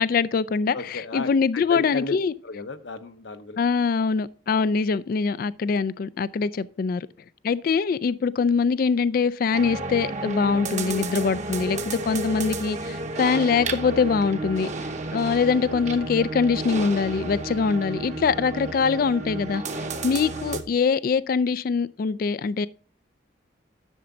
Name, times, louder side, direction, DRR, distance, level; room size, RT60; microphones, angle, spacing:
voice 1, 0.0-2.3 3.6-7.1 7.4-14.7 15.1-19.6 20.0-22.7, left 5 dB, 50° left, 0.3 m, -23 dB
voice 2, 0.7-2.2 2.4-3.6 10.8-11.3 11.6-11.7 14.6-14.8 17.3-17.4 18.2-18.3, left 3 dB, 75° left, 0.9 m, -35 dB
sound 1, 9.5-20.6, right 2 dB, 40° right, 0.9 m, -32 dB
11.0 x 7.0 x 3.8 m
head